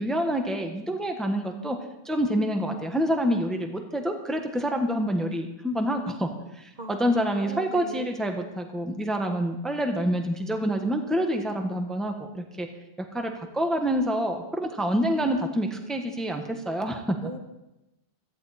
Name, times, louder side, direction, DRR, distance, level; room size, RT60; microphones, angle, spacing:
voice 1, 0.0-1.8 2.0-12.7 13.1-17.2, equal, ahead, 4 dB, 1.3 m, -27 dB
voice 2, 6.8-8.1 17.2-17.4, right 1 dB, 40° right, 3 dB, 1.5 m, -39 dB
17.5 x 14.0 x 4.3 m, 0.93 s
omnidirectional pair, 1.1 m